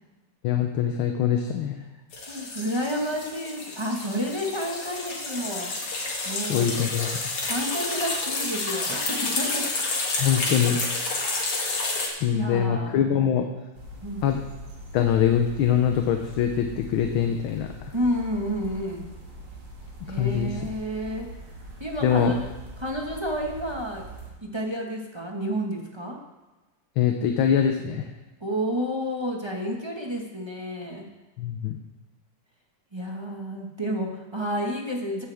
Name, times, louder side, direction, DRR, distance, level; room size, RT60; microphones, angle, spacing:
voice 1, 0.4-1.8 6.5-7.2 10.2-10.8 12.2-13.5 14.2-14.4 14.9-17.9 20.1-20.6 22.0-22.3 27.0-28.1 31.4-31.8, left 8 dB, 75° left, 5 dB, 1.6 m, -23 dB
sound 1, 2.1-12.1, left 3 dB, 90° left, 3.1 m, -30 dB
voice 2, 2.3-5.7 6.2-6.7 7.4-9.7 12.3-13.1 14.0-14.3 17.9-19.1 20.1-21.3 21.8-22.5 22.8-24.1 24.4-26.2 28.4-31.1 32.9-35.2, equal, 15° right, 0 dB, 1.3 m, -30 dB
sound 2, 13.7-24.3, equal, 75° right, 3.3 m, -42 dB
15.5 x 10.5 x 3.5 m, 1.2 s
omnidirectional pair, 2.4 m